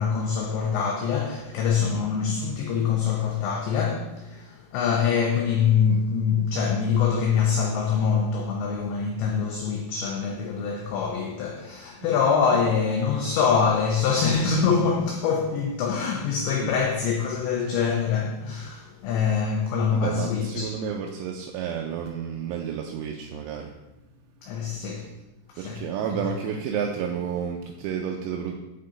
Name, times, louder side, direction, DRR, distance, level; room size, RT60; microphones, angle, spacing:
voice 1, 0.0-20.8 24.4-25.1 25.5-25.8, left 6 dB, 85° left, 2.5 m, -24 dB
voice 2, 19.9-23.8 25.6-28.5, right 7 dB, 85° right, 2.9 m, -31 dB
8.8 x 3.8 x 3.8 m
omnidirectional pair, 5.9 m